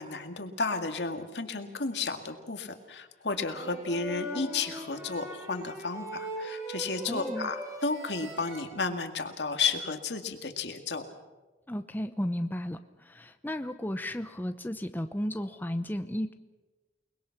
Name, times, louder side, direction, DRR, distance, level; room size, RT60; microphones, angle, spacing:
voice 1, 0.0-11.1, left 4 dB, 80° left, 6 dB, 2.1 m, -33 dB
sound 1, 3.3-8.6, equal, 15° right, 6.4 m, -40 dB
voice 2, 7.1-7.5 11.7-16.3, equal, 10° left, 8 dB, 0.7 m, -34 dB
29.0 x 20.5 x 6.0 m, 1.2 s
head